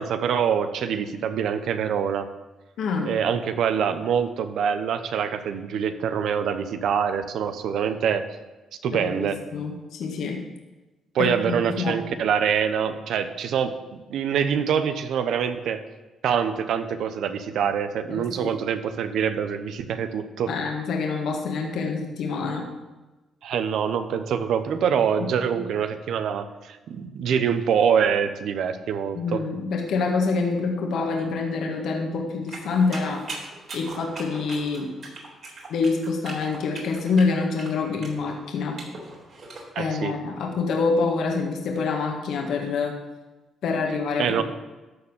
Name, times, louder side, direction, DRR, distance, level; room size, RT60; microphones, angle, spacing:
voice 1, 0.0-2.3 3.0-8.3 8.8-9.4 11.1-15.8 16.2-20.5 23.4-29.4 39.7-40.1 44.2-44.4, right 7 dB, 75° right, 10 dB, 0.8 m, -25 dB
voice 2, 2.8-3.1 8.9-10.4 11.2-12.0 18.1-18.5 20.5-22.7 25.5-25.6 29.2-33.2 33.7-34.9 35.7-38.8 39.8-42.9 43.6-44.4, left 4 dB, 75° left, 1 dB, 1.7 m, -26 dB
sound 1, 32.5-39.7, right 3 dB, 50° right, 3.8 m, -40 dB
13.5 x 4.4 x 7.3 m, 1.1 s
cardioid pair, 90°, 0 cm